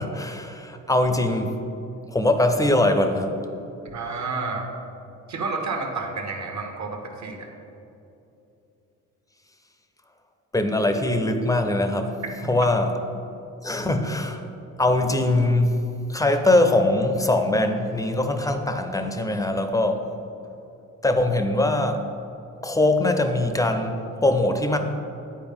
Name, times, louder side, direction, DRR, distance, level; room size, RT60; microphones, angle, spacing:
voice 1, 0.0-1.5 2.1-3.3 10.5-12.1 12.5-12.9 13.6-14.4 14.8-15.8 16.1-20.1 21.0-22.0 22.6-24.8, left 2 dB, 10° left, 6 dB, 0.5 m, -22 dB
voice 2, 3.8-4.7 5.3-7.5 12.4-12.5, right 3 dB, 60° right, 3 dB, 1.0 m, -30 dB
9.7 x 4.2 x 3.6 m, 2.8 s
cardioid pair, 100°, 33 cm